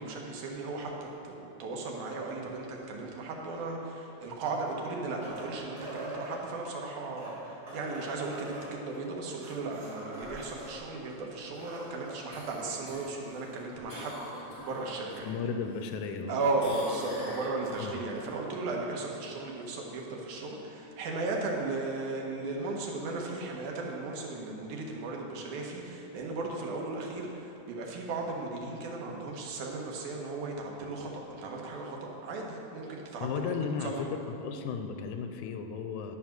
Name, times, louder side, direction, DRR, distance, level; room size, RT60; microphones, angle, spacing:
voice 1, 0.0-15.3 16.3-33.6 33.8-34.0, right 3 dB, 85° right, 0 dB, 2.7 m, -36 dB
sound 1, 4.5-6.4 7.0-10.8 11.1-11.2 11.4-12.2 13.7-13.8, right 1 dB, 35° right, 2.6 m, -44 dB
Cough, 12.3-15.3 15.7-16.3 16.6-18.3 22.7-22.8, left 1 dB, 60° left, 3.4 m, -44 dB
voice 2, 15.2-16.4 17.8-18.0 33.2-34.1 34.4-36.2, left 5 dB, 90° left, 6 dB, 2.1 m, -34 dB
11.5 x 5.8 x 6.0 m, 2.9 s
omnidirectional pair, 3.5 m